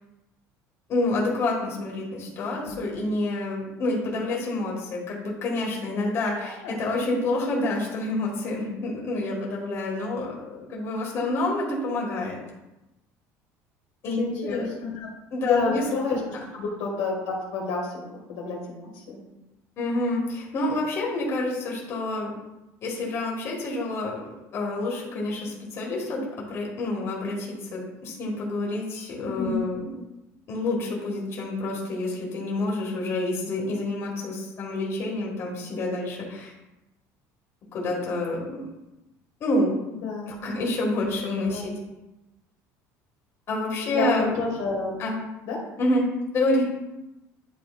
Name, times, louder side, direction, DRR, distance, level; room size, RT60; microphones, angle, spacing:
voice 1, 0.9-12.4 14.0-14.7 15.3-15.8 19.8-22.3 22.8-24.2 24.5-30.0 30.5-36.5 37.7-38.6 39.4-39.7 40.3-41.7 43.5-44.3 45.0-45.1 45.8-46.1 46.3-46.7, left 2 dB, 45° left, -3 dB, 2.0 m, -28 dB
voice 2, 14.2-15.1 15.4-16.2 16.5-19.2 29.2-29.6 39.9-40.5 41.5-41.6 43.9-44.9 45.5-45.6, left 4 dB, 85° left, -2 dB, 1.9 m, -29 dB
10.5 x 4.2 x 2.5 m, 0.97 s
cardioid pair, 150°, 7 cm